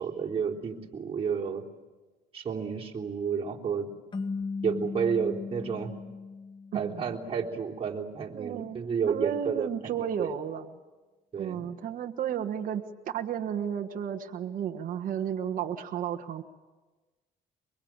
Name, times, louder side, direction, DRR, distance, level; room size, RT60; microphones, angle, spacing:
voice 1, 0.0-1.6 2.3-3.9 4.6-5.9 6.7-10.3 11.3-11.7, right 6 dB, 35° right, -2 dB, 3.5 m, -31 dB
sound 1, 4.1-7.3, left 4 dB, 30° left, 2.2 m, -37 dB
voice 2, 6.7-7.0 8.3-10.7 11.4-16.4, right 9 dB, 55° right, 5 dB, 1.4 m, -33 dB
24.0 x 23.0 x 8.9 m, 1.2 s
cardioid pair, 110°, 17 cm